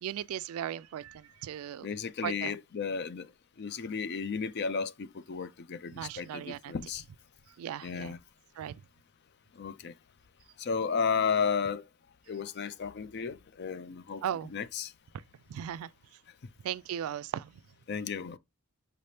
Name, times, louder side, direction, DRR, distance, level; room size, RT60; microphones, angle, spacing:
voice 1, 0.0-1.9 2.2-2.6 5.9-6.7 7.6-8.1 8.6-8.7 14.2-14.5 15.5-15.9 16.6-17.6, right 9 dB, 75° right, 0.3 m, -37 dB
voice 2, 1.8-3.3 3.6-7.0 7.8-8.2 9.6-9.9 10.6-11.8 12.3-14.2 14.5-14.9 17.9-18.4, left 6 dB, 50° left, 0.4 m, -33 dB
5.8 x 3.3 x 2.7 m
head